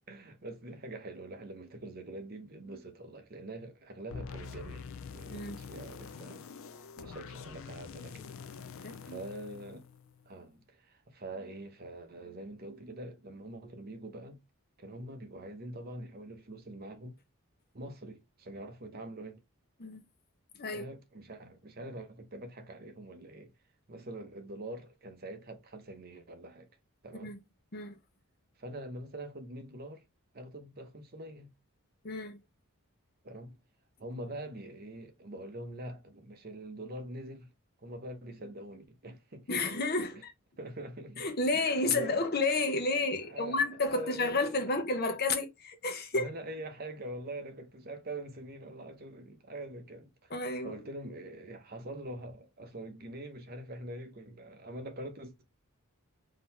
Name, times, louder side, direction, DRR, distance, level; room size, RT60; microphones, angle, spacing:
voice 1, 0.0-4.9 5.1-6.5 7.0-8.2 8.5-9.9 10.3-14.4 14.8-17.2 17.7-19.4 20.7-23.5 23.9-26.7 27.0-27.3 28.6-30.0 30.3-31.5 33.2-33.6 34.0-37.5 37.8-39.6 40.1-40.2 40.6-41.3 41.5-42.2 43.2-44.8 46.1-50.3 50.6-55.4, right 1 dB, 45° right, 0.8 m, -44 dB
sound 1, 4.1-10.3, left 6 dB, 65° left, 0.4 m, -46 dB
voice 2, 8.8-9.2 19.8-20.0 20.5-20.9 27.2-27.4 27.7-28.0 32.0-32.4 39.5-40.3 41.2-46.3 50.3-50.7, left 3 dB, 45° left, 0.8 m, -31 dB
3.8 x 2.8 x 4.3 m
head